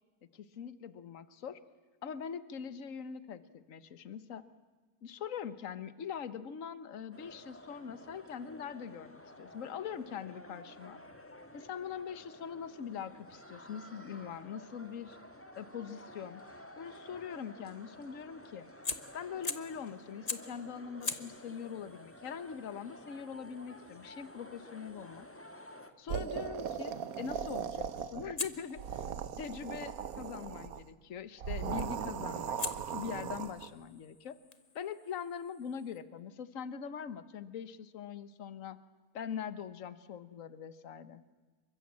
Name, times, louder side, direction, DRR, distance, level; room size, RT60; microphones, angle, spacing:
voice 1, 0.3-1.6 2.0-4.4 5.0-11.0 11.5-15.2 15.6-16.4 16.8-18.7 19.1-25.3 26.0-34.4 34.7-38.8 39.1-41.2, left 7 dB, 65° left, 14 dB, 1.5 m, -42 dB
sound 1, 7.1-25.9, left 1 dB, 10° left, 1.9 m, -52 dB
Fire, 18.8-19.8 20.3-20.6 21.0-25.9 28.4-30.5 31.8-32.1 32.6-36.0, left 4 dB, 30° left, 1.2 m, -44 dB
sound 2, 26.1-28.4 28.7-30.8 31.4-33.7, right 7 dB, 75° right, 1.5 m, -38 dB
27.5 x 24.0 x 8.5 m, 1.4 s
omnidirectional pair, 1.5 m